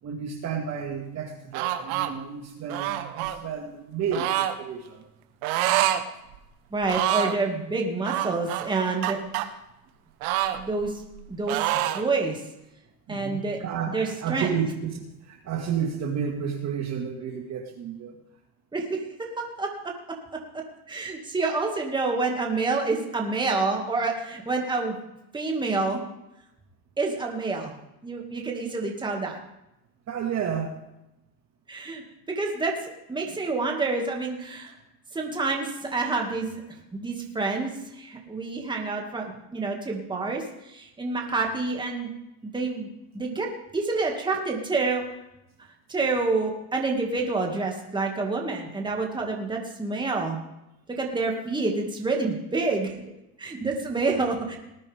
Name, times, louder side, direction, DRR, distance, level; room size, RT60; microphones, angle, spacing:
voice 1, 0.0-5.0 13.1-18.2 30.1-30.8 54.1-54.2, right 7 dB, 35° right, 2 dB, 2.0 m, -31 dB
sound 1, 1.5-2.1 2.7-3.4 4.1-4.6 5.4-6.0 6.3-6.4 6.8-7.4 8.0-9.5 10.2-11.2 11.5-12.1, right 13 dB, 65° right, 1.3 m, -26 dB
voice 2, 6.7-9.2 10.5-11.0 11.3-12.4 13.1-13.6 13.9-14.5 18.7-19.9 20.5-24.9 25.3-26.0 27.0-27.7 28.0-29.4 31.7-32.0 32.3-34.7 35.1-36.6 36.9-42.1 42.4-42.9 43.1-45.0 45.9-50.4 50.9-53.0 53.4-54.6, right 3 dB, 10° right, 1 dB, 2.2 m, -28 dB
19.0 x 9.6 x 3.6 m, 0.89 s
supercardioid pair, 115°, 45 cm